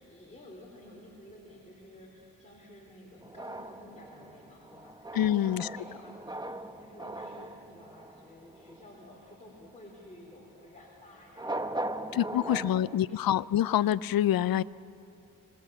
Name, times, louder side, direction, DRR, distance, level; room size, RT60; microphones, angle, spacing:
voice 1, 0.0-5.0 5.3-13.2, left 1 dB, 20° left, -4 dB, 3.8 m, -52 dB
sound 1, 3.2-9.0 11.3-13.0, right 1 dB, 10° right, 0.8 m, -39 dB
voice 2, 5.1-5.7 12.1-14.6, left 11 dB, 85° left, 19 dB, 0.5 m, -26 dB
26.0 x 19.5 x 7.0 m, 2.6 s
wide cardioid pair, 95°, 35 cm